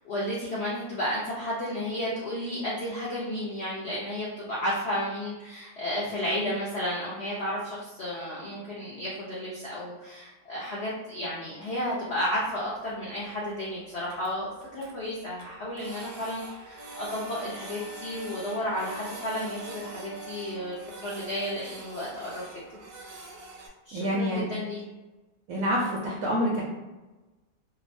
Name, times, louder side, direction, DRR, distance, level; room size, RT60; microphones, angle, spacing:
voice 1, 0.0-14.5 14.7-22.4 23.8-24.8, left 1 dB, 75° left, -7 dB, 0.6 m, -32 dB
Printer, 12.1-12.2 12.4-12.5 12.9-13.0 13.2-13.3 13.6-13.7 13.9-14.9 15.4-23.7, right 2 dB, 90° right, 1.2 m, -46 dB
sound 1, 16.7-20.7, right 2 dB, 30° left, 0.5 m, -45 dB
voice 2, 23.9-24.4 25.5-26.6, equal, 70° right, -4 dB, 0.8 m, -27 dB
2.9 x 2.1 x 2.5 m, 1.1 s
omnidirectional pair, 1.8 m